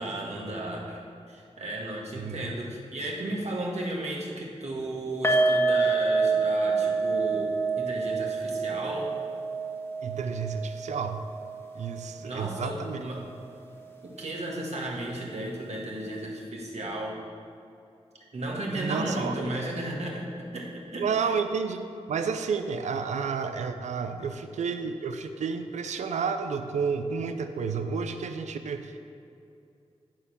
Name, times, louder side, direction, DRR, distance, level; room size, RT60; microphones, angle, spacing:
voice 1, 0.0-7.5 7.8-9.1 12.2-13.3 14.0-17.2 18.3-21.1 24.0-24.2, right 1 dB, 70° right, -2 dB, 1.8 m, -34 dB
voice 2, 2.2-2.8 10.0-11.2 11.8-13.0 18.7-19.5 21.0-29.0, right 5 dB, 90° right, 8 dB, 0.5 m, -31 dB
sound 1, 5.2-12.4 12.7-12.9 13.3-13.4, right 3 dB, 20° left, 1.5 m, -27 dB
10.5 x 4.6 x 7.0 m, 2.6 s
cardioid pair, 45°, 12 cm